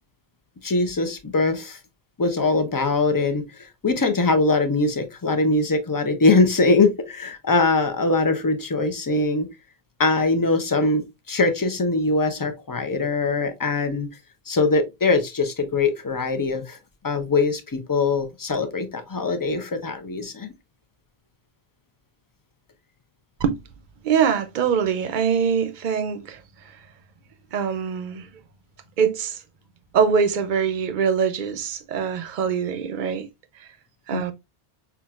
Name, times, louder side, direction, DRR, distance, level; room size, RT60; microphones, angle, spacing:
voice 1, 0.6-1.8 2.2-3.4 3.8-9.5 10.0-14.1 14.5-16.8 17.0-20.5 34.1-34.2, left 3 dB, 30° left, 0.4 m, -22 dB
voice 2, 24.0-26.4 27.5-28.3 29.0-29.4 29.9-33.3 34.1-34.3, right 7 dB, 55° right, 0.7 m, -23 dB
5.8 x 2.2 x 2.3 m
omnidirectional pair, 1.0 m